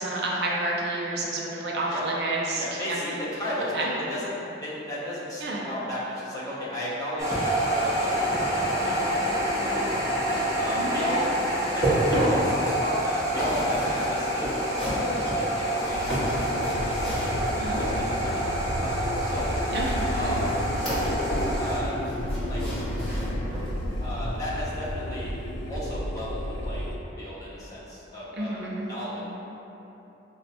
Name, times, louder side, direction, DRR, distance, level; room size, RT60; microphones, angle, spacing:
voice 1, 0.0-3.0 3.7-3.9 5.4-5.7 10.2-10.5 10.8-10.9 17.6-17.8 19.7-20.3 28.4-28.9, right 2 dB, 60° right, -3 dB, 0.5 m, -30 dB
voice 2, 2.6-4.3 4.6-8.1 8.4-9.9 10.5-11.3 11.7-17.5 17.8-17.9 18.2-18.5 18.8-19.5 20.1-21.1 21.5-22.0 22.5-22.6 24.0-25.3 25.7-29.2, left 1 dB, 20° left, -9 dB, 0.7 m, -34 dB
sound 1, 7.2-21.8, right 1 dB, 20° right, 0.6 m, -28 dB
sound 2, 11.6-18.3 19.7-21.6 21.8-23.8 24.2-24.4 24.9-25.0, right 1 dB, ahead, 1.1 m, -31 dB
sound 3, 15.9-27.0, equal, 90° left, 0.4 m, -31 dB
5.0 x 2.1 x 2.6 m, 3.0 s
head